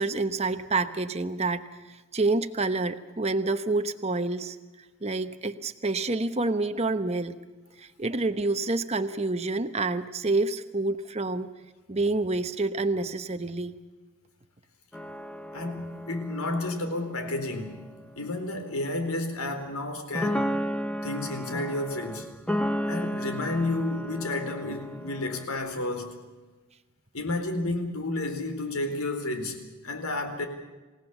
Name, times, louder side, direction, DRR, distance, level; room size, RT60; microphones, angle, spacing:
voice 1, 0.0-1.6 1.9-4.6 5.0-7.3 7.8-11.5 11.9-13.7, right 3 dB, 30° right, 1.0 m, -28 dB
sound 1, 14.9-18.1 19.4-19.6 20.2-25.4, equal, 5° left, 1.0 m, -33 dB
voice 2, 15.5-20.6 21.0-22.3 22.9-26.2 27.1-30.5, left 2 dB, 75° left, 4.1 m, -31 dB
28.0 x 17.0 x 7.2 m
head